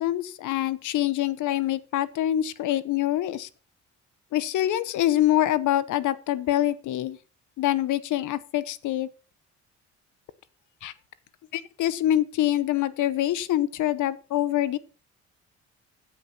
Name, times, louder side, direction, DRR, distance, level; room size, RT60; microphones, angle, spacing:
voice 1, 0.0-3.5 4.3-7.2 7.6-9.1 10.8-10.9 11.5-14.8, left 13 dB, 80° left, 17 dB, 0.9 m, -25 dB
9.7 x 8.0 x 5.9 m, 0.36 s
cardioid pair, 90°, 30 cm